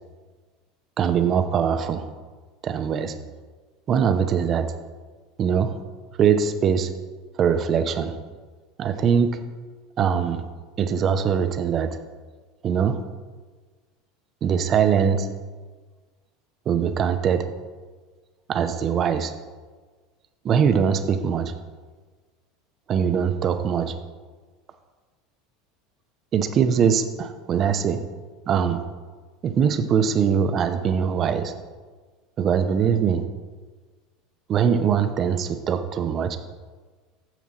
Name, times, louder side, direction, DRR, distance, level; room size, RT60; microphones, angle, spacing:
voice 1, 1.0-2.1 2.6-3.2 3.9-4.7 5.4-5.7 6.2-6.9 7.4-8.2 8.8-9.4 10.0-10.4 10.8-12.0 12.6-13.0 14.4-15.3 16.7-17.5 18.5-19.3 20.4-21.5 22.9-23.9 26.3-28.0 28.5-28.8 29.4-31.5 32.4-33.2 34.5-36.4, right 7 dB, 35° right, 9 dB, 0.7 m, -22 dB
9.1 x 7.4 x 4.1 m, 1.4 s
figure-of-eight pair, 75°, 0 cm